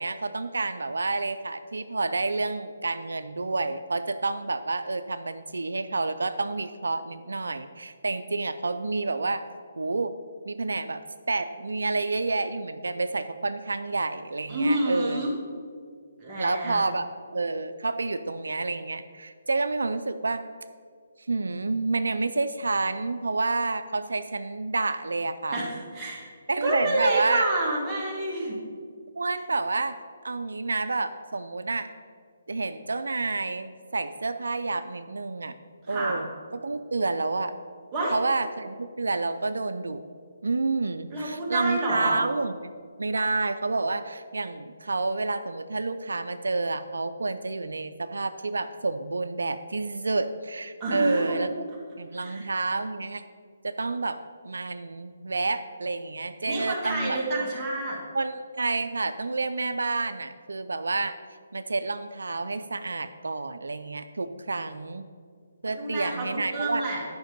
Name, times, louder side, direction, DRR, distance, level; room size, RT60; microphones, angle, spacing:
voice 1, 0.0-9.4 9.8-10.2 10.5-15.2 16.4-17.1 17.3-20.4 21.3-25.6 26.5-27.5 29.2-29.9 30.2-31.9 32.5-35.5 35.9-37.5 38.1-40.0 40.4-42.5 43.0-51.5 52.0-53.2 53.6-57.4 58.1-61.2 61.5-65.0 65.6-66.8, right 3 dB, 85° right, 10 dB, 0.4 m, -29 dB
voice 2, 14.5-15.3 16.2-16.8 25.5-26.3 26.6-28.6 35.9-36.2 37.9-38.1 41.1-42.2 50.8-51.4 52.1-52.5 56.5-58.0 65.7-67.0, right 1 dB, 20° right, -5 dB, 2.1 m, -28 dB
10.5 x 5.3 x 5.2 m, 2.1 s
hypercardioid pair, 155°, 0 cm